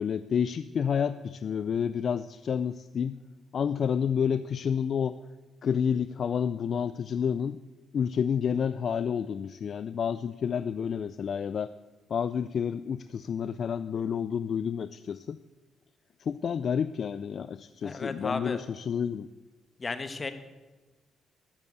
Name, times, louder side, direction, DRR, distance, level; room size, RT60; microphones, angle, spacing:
voice 1, 0.0-3.2 3.5-5.2 5.6-7.6 7.9-11.7 12.1-15.4 16.2-19.3, left 7 dB, 55° left, 14 dB, 0.3 m, -29 dB
voice 2, 17.8-18.6 19.8-20.3, left 4 dB, 30° left, 10 dB, 1.2 m, -34 dB
12.5 x 7.3 x 8.1 m, 1.2 s
cardioid pair, 90°, 0 cm